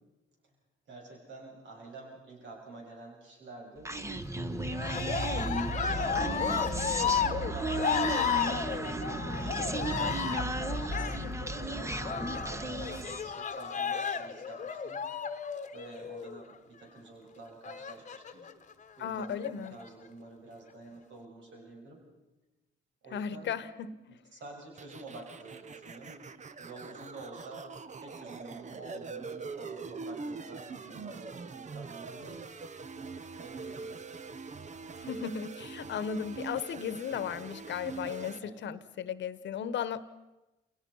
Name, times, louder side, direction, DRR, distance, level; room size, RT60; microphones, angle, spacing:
voice 1, 0.9-3.9 4.9-5.5 6.0-10.2 10.6-15.1 15.7-18.5 19.0-22.0 23.0-23.6 24.1-26.2 26.6-27.7 28.0-32.5 33.4-34.0 38.4-38.6, right 3 dB, 70° right, 0 dB, 6.4 m, -48 dB
Human voice, 3.8-13.3, right 1 dB, 15° right, 1.3 m, -34 dB
Cheering, 4.7-16.4 17.6-18.5 19.2-19.9, left 7 dB, 40° left, 1.2 m, -33 dB
voice 2, 19.0-19.8 23.1-24.2 35.0-40.0, left 7 dB, 65° left, 15 dB, 1.2 m, -36 dB
sound 1, 24.8-38.4, right 4 dB, 35° right, 1.0 m, -43 dB
28.0 x 17.5 x 5.6 m, 1.1 s
cardioid pair, 90°, 20 cm